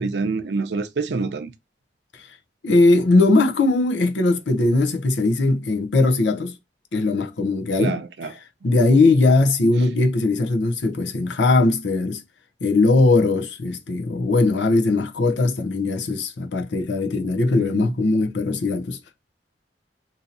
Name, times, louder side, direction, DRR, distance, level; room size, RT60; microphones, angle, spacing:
voice 1, 0.0-1.5 7.8-8.3 17.6-17.9, right 4 dB, 70° right, 0.5 m, -26 dB
voice 2, 2.6-6.5 6.9-8.0 8.6-12.2 12.6-19.0, left 2 dB, 80° left, 0.6 m, -19 dB
2.7 x 2.6 x 4.1 m
head